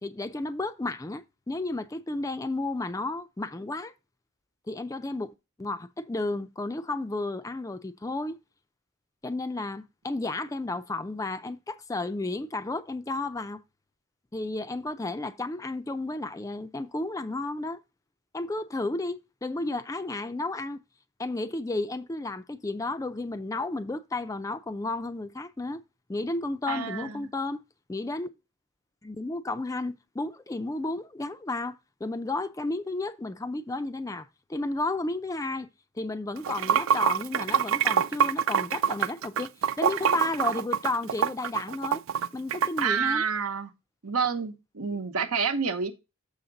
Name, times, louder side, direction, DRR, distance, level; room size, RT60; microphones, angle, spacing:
voice 1, 0.0-3.9 4.7-5.3 5.6-8.4 9.2-13.6 14.3-17.8 18.3-20.8 21.2-25.8 26.1-27.6 27.9-28.3 29.0-35.7 36.0-39.5 39.8-42.0 42.3-43.2, left 2 dB, 15° left, 0.3 m, -32 dB
voice 2, 26.7-27.3 42.8-43.7 44.0-45.9, right 6 dB, 85° right, 1.0 m, -28 dB
Water / Sink (filling or washing), 36.4-42.8, right 8 dB, 65° right, 0.3 m, -25 dB
7.0 x 5.7 x 3.8 m
head